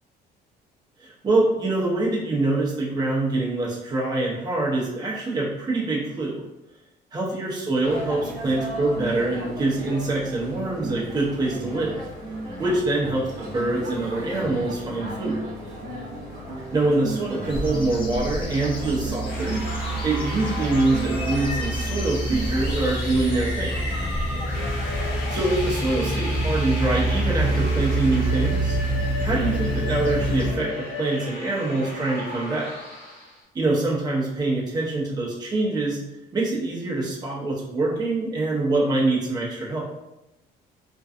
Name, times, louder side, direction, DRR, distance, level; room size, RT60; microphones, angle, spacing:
voice 1, 1.0-6.4 7.1-12.0 12.6-15.4 16.7-19.6 20.0-23.8 25.3-28.8 29.2-32.7 33.5-36.0 36.3-39.9, right 2 dB, 25° right, -5 dB, 0.7 m, -25 dB
sound 1, 7.8-25.1, right 1 dB, 50° right, 0.9 m, -35 dB
sound 2, 17.5-30.5, right 1 dB, 30° left, 0.6 m, -27 dB
sound 3, 19.2-33.4, left 2 dB, 75° left, 1.0 m, -34 dB
2.5 x 2.2 x 2.5 m, 0.93 s
cardioid pair, 110°, 17 cm